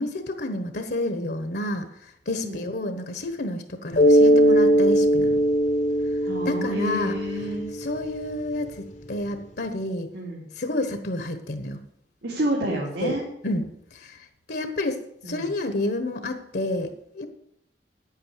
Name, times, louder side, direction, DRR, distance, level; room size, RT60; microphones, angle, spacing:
voice 1, 0.0-5.4 6.4-7.1 7.7-10.1 10.6-11.8 13.0-13.2 13.4-17.3, left 1 dB, 65° left, 8 dB, 1.2 m, -30 dB
Mallet percussion, 4.0-8.4, equal, 45° left, 0.9 m, -20 dB
voice 2, 6.2-7.6 10.1-10.5 12.2-13.2 15.2-15.5, right 1 dB, 75° right, -4 dB, 3.0 m, -29 dB
9.9 x 8.8 x 8.1 m, 0.78 s
head